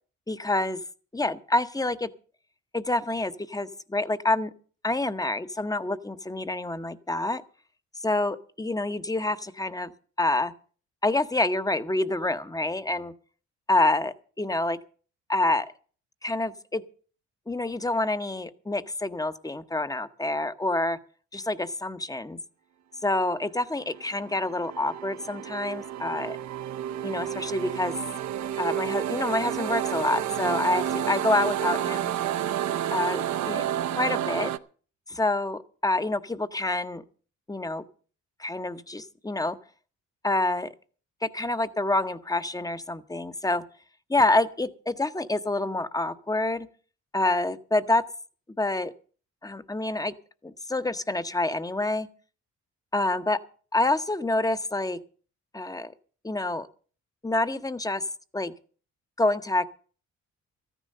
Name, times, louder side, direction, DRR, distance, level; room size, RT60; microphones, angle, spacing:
voice 1, 0.3-0.8 1.1-2.1 2.7-4.5 4.8-7.4 8.0-9.9 10.2-10.5 11.0-13.1 13.7-14.8 15.3-15.7 16.2-16.8 17.5-21.0 21.3-22.4 23.0-26.4 27.0-27.9 28.6-32.1 32.9-33.6 33.9-34.5 35.1-37.0 37.5-37.8 38.4-39.6 40.2-40.7 41.2-43.6 44.1-46.7 47.1-48.0 48.6-48.9 49.4-50.1 50.4-52.1 52.9-53.4 53.7-55.0 55.5-55.9 56.2-56.7 57.2-58.0 58.3-58.5 59.2-59.7, left 2 dB, 10° left, 13 dB, 0.9 m, -27 dB
sound 1, 23.9-34.6, right 10 dB, 65° right, 0.8 m, -30 dB
14.0 x 10.0 x 6.6 m, 0.41 s
cardioid pair, 90°, 30 cm